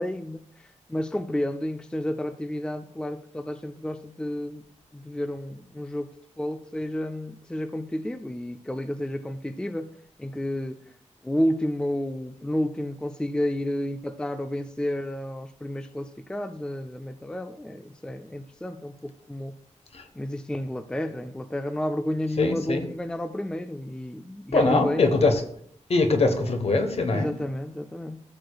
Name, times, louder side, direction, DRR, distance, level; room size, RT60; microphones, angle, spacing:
voice 1, 0.0-4.6 4.9-6.1 6.4-10.8 11.2-19.6 20.2-25.3 27.1-28.2, left 1 dB, 5° left, 9 dB, 0.4 m, -31 dB
voice 2, 22.4-22.9 24.5-25.4 25.9-27.3, left 3 dB, 55° left, 6 dB, 1.1 m, -22 dB
14.0 x 6.6 x 2.3 m, 0.63 s
wide cardioid pair, 115°, 13 cm